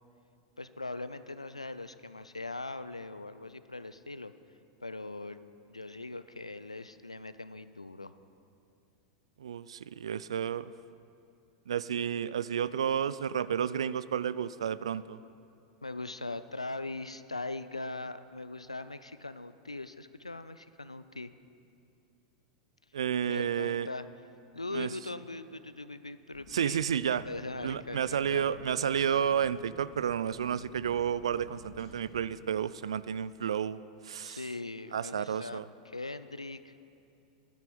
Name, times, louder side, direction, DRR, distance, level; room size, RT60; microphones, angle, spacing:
voice 1, 0.6-4.3 4.8-5.4 5.7-8.1 15.8-21.3 23.3-24.1 24.5-26.9 27.2-28.6 34.2-36.7, left 2 dB, 85° left, 13 dB, 0.4 m, -40 dB
voice 2, 9.4-10.7 11.7-15.2 22.9-23.9 24.7-24.9 26.5-27.2 27.6-34.4 34.9-35.7, right 8 dB, 65° right, 17 dB, 0.3 m, -31 dB
sound 1, 26.3-32.3, left 1 dB, 45° left, 2.5 m, -53 dB
11.0 x 10.0 x 7.0 m, 2.6 s
figure-of-eight pair, 90°, 3 cm